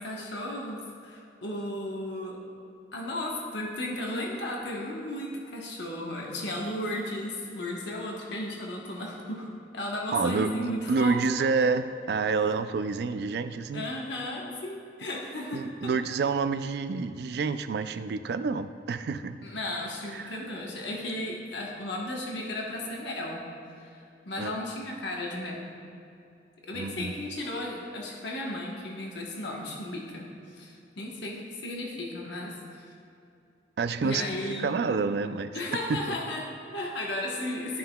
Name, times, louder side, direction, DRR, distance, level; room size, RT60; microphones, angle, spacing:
voice 1, 0.0-2.4 2.9-11.2 11.5-11.7 13.7-15.9 19.4-23.5 23.8-24.0 24.3-25.8 26.6-32.9 34.0-34.8 35.5-37.8, left 1 dB, 70° left, -1 dB, 1.1 m, -35 dB
voice 2, 10.1-10.5 10.9-13.8 15.5-19.4 20.1-20.4 24.4-24.5 26.7-27.3 33.8-34.2 34.6-35.5 35.9-36.1, right 4 dB, 60° right, 11 dB, 0.3 m, -28 dB
13.0 x 5.6 x 2.2 m, 2.6 s
head